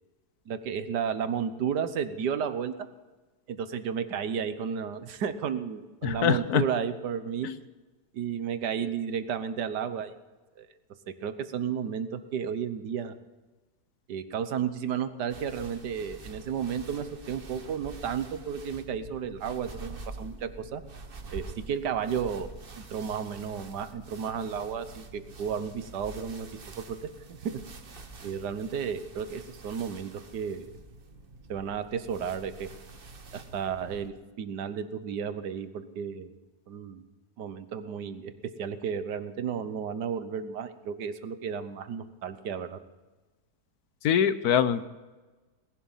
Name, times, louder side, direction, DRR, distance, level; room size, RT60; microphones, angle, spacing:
voice 1, 0.5-2.7 3.5-7.5 8.1-10.1 10.6-10.7 11.1-13.1 14.1-20.8 21.3-22.5 22.8-27.0 27.3-27.6 28.2-30.7 31.5-32.7 33.3-36.3 36.7-37.0 37.4-42.8, right 7 dB, 80° right, 11 dB, 1.6 m, -33 dB
voice 2, 6.0-6.6 7.4-7.5 44.0-44.9, left 8 dB, 70° left, 13 dB, 1.2 m, -24 dB
sound 1, 15.3-34.1, right 3 dB, 35° right, 1.2 m, -46 dB
19.5 x 11.5 x 5.6 m, 1.2 s
omnidirectional pair, 1.8 m